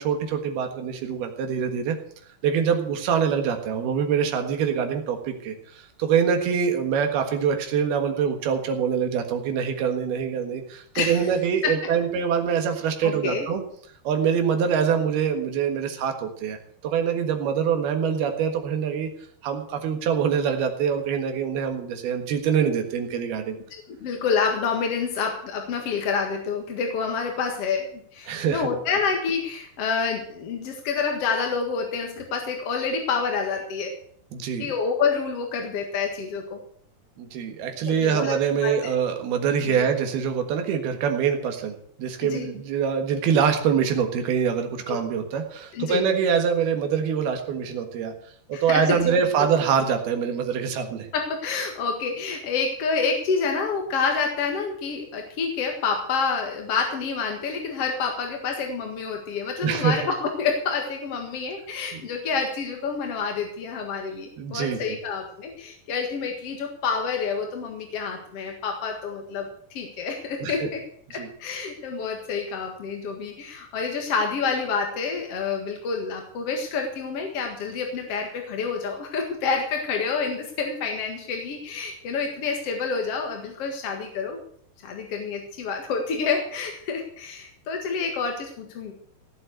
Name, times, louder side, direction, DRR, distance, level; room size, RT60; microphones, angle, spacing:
voice 1, 0.0-2.0 2.4-13.6 14.1-16.6 16.8-19.1 19.4-23.6 28.3-28.8 34.3-34.7 37.2-48.1 48.5-51.1 59.6-60.1 61.9-62.0 64.4-64.8 70.4-70.7 71.1-71.3, right 7 dB, 70° right, 5 dB, 3.5 m, -24 dB
voice 2, 10.9-11.3 11.6-11.9 13.0-13.5 24.0-34.0 34.6-36.6 37.9-38.3 38.6-38.9 39.6-39.9 42.2-42.5 44.9-45.0 45.7-46.0 48.5-49.2 51.1-70.8 71.1-84.4 84.8-88.9, left 5 dB, 50° left, 3 dB, 2.0 m, -28 dB
17.0 x 7.7 x 8.0 m, 0.63 s
omnidirectional pair, 4.7 m